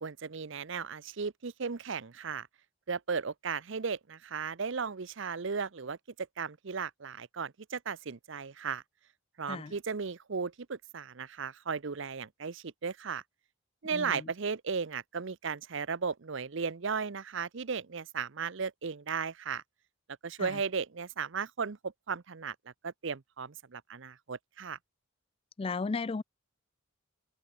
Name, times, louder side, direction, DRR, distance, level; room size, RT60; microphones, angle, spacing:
voice 1, 0.0-2.5 2.9-6.0 6.4-8.8 9.4-13.2 13.8-19.6 20.2-22.6 22.8-24.8, right 5 dB, 60° right, 0.7 m, -36 dB
voice 2, 13.9-14.3 20.4-20.6 25.6-26.2, left 4 dB, 25° left, 0.3 m, -35 dB
head